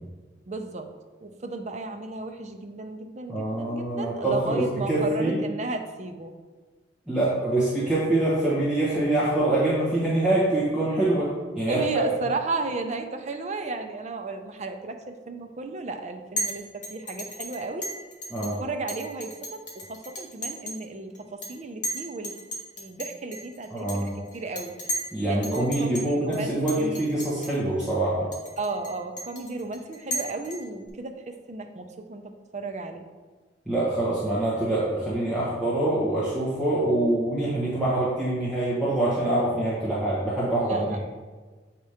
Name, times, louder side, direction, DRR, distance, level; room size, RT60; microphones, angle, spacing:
voice 1, 0.5-0.9 1.2-6.3 11.7-17.9 18.4-22.3 22.8-24.7 25.3-27.0 28.6-33.0 40.5-41.0, right 3 dB, 40° right, 5 dB, 0.5 m, -34 dB
voice 2, 3.3-5.4 7.1-12.1 18.3-18.6 23.7-24.1 25.1-28.3 33.7-41.1, right 1 dB, 5° right, -10 dB, 1.2 m, -25 dB
Chink clink, 16.4-16.6 16.8-18.5 18.9-20.8 21.1-21.5 21.8-25.1 25.4-26.0 26.3-26.4 26.7-27.5 27.8-27.9 28.3-30.9, equal, 45° left, 1.4 m, -34 dB
8.2 x 3.0 x 4.9 m, 1.4 s
head